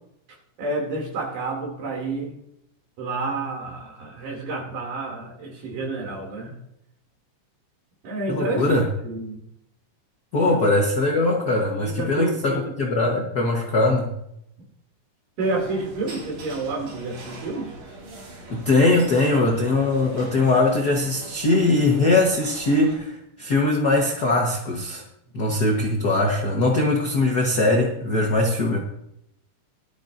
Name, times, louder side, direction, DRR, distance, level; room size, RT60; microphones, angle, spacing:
voice 1, 0.6-2.4 3.0-6.5 8.0-9.4 10.4-10.6 11.7-12.9 15.4-17.7, right 3 dB, 75° right, -1 dB, 4.2 m, -29 dB
voice 2, 8.3-8.8 10.3-14.1 18.5-25.0 25.3-28.8, left 2 dB, 70° left, 0 dB, 0.9 m, -21 dB
sound 1, 15.4-23.0, right 2 dB, 55° right, 3.5 m, -41 dB
17.5 x 12.0 x 2.6 m, 0.79 s
omnidirectional pair, 3.9 m